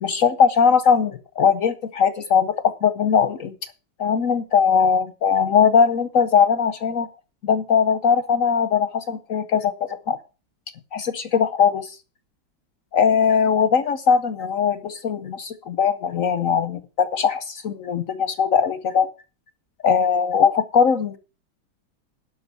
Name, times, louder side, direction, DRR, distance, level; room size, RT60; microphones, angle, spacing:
voice 1, 0.0-3.5 4.0-7.1 7.4-10.2 10.9-12.0 12.9-19.1 19.8-21.2, left 6 dB, 60° left, 12 dB, 0.8 m, -20 dB
11.5 x 5.6 x 6.8 m, 0.33 s
omnidirectional pair, 2.2 m